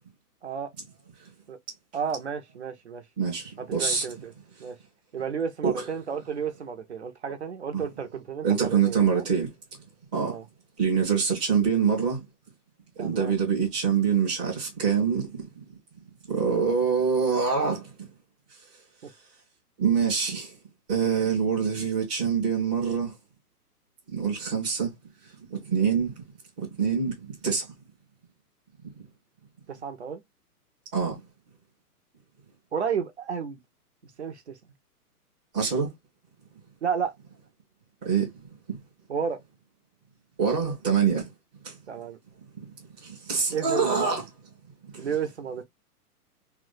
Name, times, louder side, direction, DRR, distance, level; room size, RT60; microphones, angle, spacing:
voice 1, 1.9-3.0 3.6-4.3 4.6-4.8 5.1-9.2 10.1-10.5 13.0-13.3 19.0-19.1 25.7-25.8 29.7-30.2 32.7-33.6 34.0-34.6 36.8-37.1 39.1-39.4 41.9-42.2 43.5-44.2 45.0-45.6, right 6 dB, 45° right, 0.6 m, -32 dB
voice 2, 3.2-4.0 5.6-5.8 7.7-7.8 8.4-9.5 10.1-10.4 10.8-12.2 13.0-15.6 16.3-18.1 19.8-20.5 20.9-23.1 24.1-24.9 25.5-26.2 26.6-27.7 30.9-31.2 35.5-35.9 38.0-38.3 38.7-38.8 40.4-41.3 41.6-41.8 42.6-42.7 43.0-44.2 44.8-45.1, right 6 dB, 5° right, 0.6 m, -25 dB
3.2 x 2.4 x 3.8 m
hypercardioid pair, 170°, 46 cm